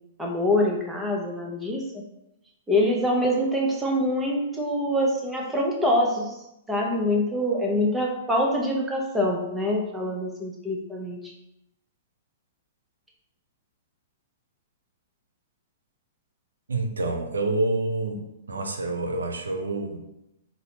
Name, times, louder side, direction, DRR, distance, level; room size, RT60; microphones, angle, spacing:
voice 1, 0.2-2.0 2.7-6.3 6.7-11.3, left 1 dB, 10° right, -1 dB, 0.7 m, -25 dB
voice 2, 16.7-18.2 18.5-20.0, right 2 dB, 90° right, 4 dB, 0.4 m, -27 dB
3.8 x 2.1 x 2.9 m, 0.88 s
hypercardioid pair, 120°, 0 cm